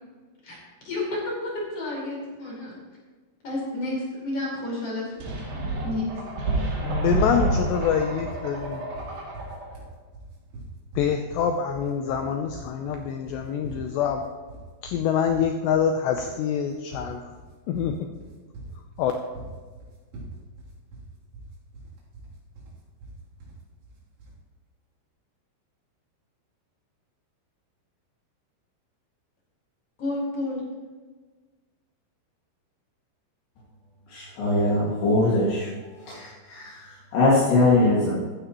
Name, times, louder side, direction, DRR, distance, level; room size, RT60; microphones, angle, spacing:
voice 1, 0.8-2.8 3.4-6.1 6.5-6.8 30.0-30.6, left 2 dB, 30° left, -4 dB, 5.2 m, -31 dB
sound 1, 5.2-9.7, right 2 dB, 50° right, 3.8 m, -28 dB
voice 2, 6.8-8.8 11.0-14.2 14.8-17.2 17.7-18.1 19.0-19.1, left 8 dB, 90° left, 5 dB, 2.4 m, -25 dB
sound 2, 7.4-24.4, right 2 dB, 70° right, 5.6 m, -42 dB
voice 3, 34.1-35.7 36.0-38.1, left 2 dB, 65° left, -7 dB, 4.2 m, -22 dB
15.0 x 14.0 x 3.1 m, 1.4 s
omnidirectional pair, 5.9 m